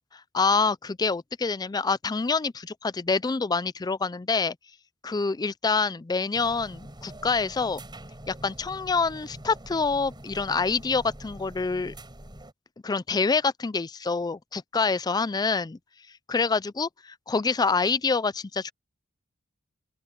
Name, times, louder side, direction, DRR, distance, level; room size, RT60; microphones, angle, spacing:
voice 1, 0.1-4.6 5.0-7.8 8.3-11.9 12.8-15.8 16.3-16.9 17.3-18.7, left 4 dB, 20° left, 0.4 m, -26 dB
sound 1, 6.3-12.5, right 1 dB, 20° right, 4.8 m, -45 dB
open air
head